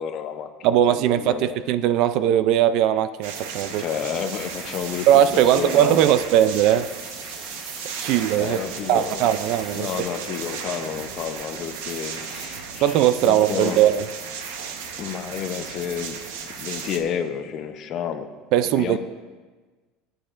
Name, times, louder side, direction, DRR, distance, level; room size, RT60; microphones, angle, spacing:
voice 1, 0.0-1.6 3.8-5.1 5.3-6.1 8.4-9.2 9.7-13.8 15.0-16.2 16.6-18.3 18.6-19.0, left 8 dB, 35° left, 0.6 m, -31 dB
voice 2, 0.6-3.8 5.1-6.9 8.0-8.6 8.9-9.9 12.8-14.1 18.5-19.0, right 11 dB, 45° right, 0.3 m, -19 dB
sound 1, 3.2-17.0, right 6 dB, 85° right, 1.0 m, -35 dB
sound 2, 3.9-10.0, right 2 dB, 20° right, 1.3 m, -43 dB
17.5 x 9.0 x 2.5 m
cardioid pair, 175°, 0 cm